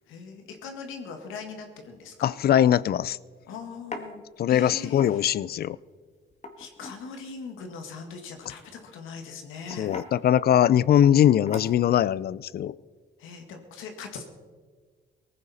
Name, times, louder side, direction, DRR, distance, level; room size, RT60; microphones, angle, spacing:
voice 1, 0.1-2.3 3.5-4.2 4.5-5.3 6.6-9.9 13.2-14.2, left 5 dB, 90° left, 4 dB, 1.8 m, -40 dB
sound 1, 1.9-2.1 2.6-2.7 3.9-4.1 4.9-5.4 6.3-7.0 8.6-8.9 9.7-10.1 11.0-11.2 11.5-11.9, left 3 dB, 35° left, 1.9 m, -39 dB
voice 2, 2.2-3.2 4.4-5.8 9.8-12.7, left 10 dB, 50° left, 21 dB, 0.4 m, -21 dB
18.5 x 15.0 x 4.2 m, 1.5 s
cardioid pair, 90°, 20 cm